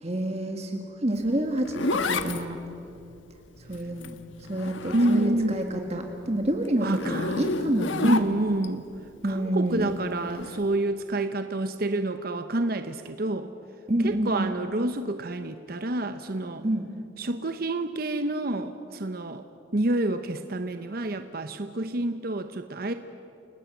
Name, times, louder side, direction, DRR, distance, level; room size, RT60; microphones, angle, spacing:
voice 1, 0.0-2.6 3.7-4.2 4.5-8.2 9.2-9.9 13.9-14.5 16.6-16.9, right 1 dB, 35° right, 3 dB, 1.8 m, -28 dB
Zipper (clothing), 1.2-5.7 6.0-8.7 10.3-10.6, left 3 dB, 85° left, 1.3 m, -32 dB
voice 2, 4.9-5.6 6.8-7.4 8.0-8.9 9.2-13.5 14.0-16.6 17.2-19.4 19.7-22.9, right 2 dB, 50° right, 9 dB, 0.9 m, -28 dB
30.0 x 19.5 x 8.3 m, 2.7 s
head